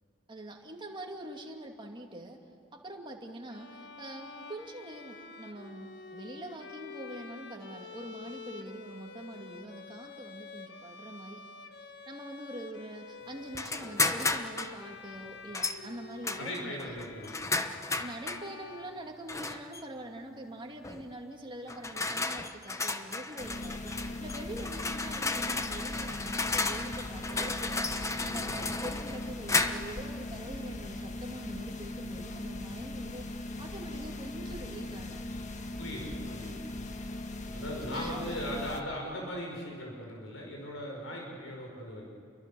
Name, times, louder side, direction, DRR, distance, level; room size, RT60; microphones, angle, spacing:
voice 1, 0.3-2.4 2.8-11.4 12.1-16.8 18.0-35.4 37.9-38.4, right 1 dB, 25° right, 1 dB, 2.5 m, -44 dB
Bowed string instrument, 3.5-19.6, left 4 dB, 60° left, 1.4 m, -48 dB
sound 1, 13.5-14.8 15.5-15.8 16.2-18.5 19.3-19.8 20.8-21.1 21.7-30.0, left 3 dB, 15° left, 0.9 m, -33 dB
voice 2, 16.3-17.5 35.8-36.7 37.5-42.0, equal, 85° left, -1 dB, 5.3 m, -39 dB
sound 2, 23.4-38.8, left 2 dB, 40° left, 1.4 m, -39 dB
29.5 x 23.0 x 7.1 m, 2.4 s
head